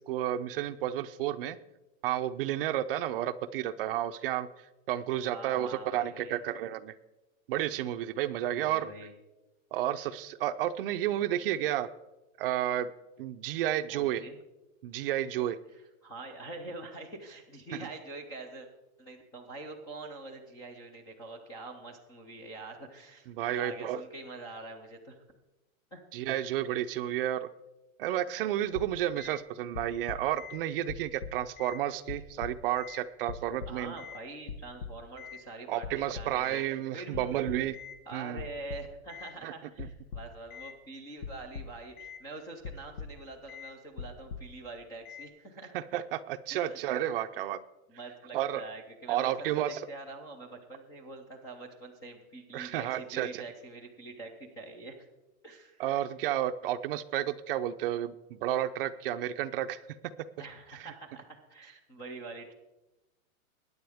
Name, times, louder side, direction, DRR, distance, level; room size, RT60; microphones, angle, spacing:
voice 1, 0.1-1.6 2.0-4.5 4.9-6.9 7.5-8.9 9.7-11.9 12.4-12.9 13.2-14.2 14.8-15.6 23.3-24.0 26.1-27.5 28.0-34.0 35.7-37.8 38.1-38.4 39.4-39.5 39.8-39.9 45.7-47.6 48.3-48.6 49.1-49.8 52.5-53.4 55.8-59.8 60.8-60.9, right 12 dB, 40° right, 12 dB, 0.5 m, -31 dB
voice 2, 5.2-6.4 8.5-9.1 13.9-14.4 15.7-18.7 19.0-25.2 25.9-26.0 26.3-26.4 33.7-37.5 38.1-45.7 46.5-46.8 47.9-55.1 55.4-55.8 60.4-62.5, right 2 dB, 10° left, 3 dB, 0.4 m, -45 dB
sound 1, 28.7-29.4 29.7-30.6 30.9-31.8 32.1-33.0 33.3-34.2 34.5-35.4 35.8-36.7 37.1-38.0 38.4-39.3 39.8-40.7 41.2-42.2 42.6-43.2 43.5-43.7 44.0-44.6 45.0-45.3, left 6 dB, 75° left, 1.5 m, -42 dB
21.5 x 9.6 x 3.5 m, 1.0 s
supercardioid pair, 160°, 42 cm